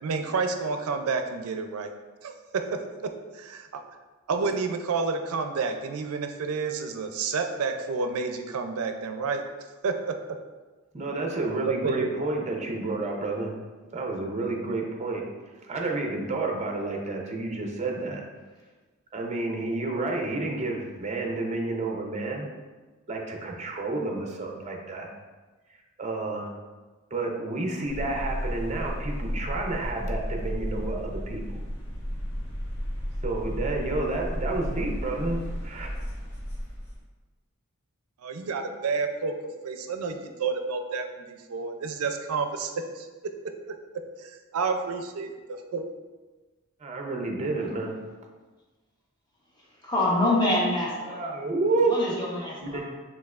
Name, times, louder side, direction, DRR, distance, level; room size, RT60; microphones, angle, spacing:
voice 1, 0.0-1.9 2.2-3.8 4.3-9.4 9.8-10.1 11.8-12.1 38.2-39.3 39.6-43.1 44.2-45.9, right 4 dB, 80° right, 6 dB, 0.4 m, -30 dB
voice 2, 10.9-13.6 13.9-15.2 15.7-18.2 19.1-22.5 23.1-25.1 26.0-26.5 27.1-31.4 33.2-35.9 46.8-48.0 51.1-51.9 52.6-52.9, right 2 dB, 30° right, 1 dB, 0.6 m, -30 dB
sound 1, 27.9-37.0, equal, 80° left, 1.1 m, -33 dB
voice 3, 49.8-51.2 51.9-53.0, left 1 dB, 20° left, -5 dB, 0.9 m, -26 dB
5.4 x 3.5 x 2.4 m, 1.3 s
head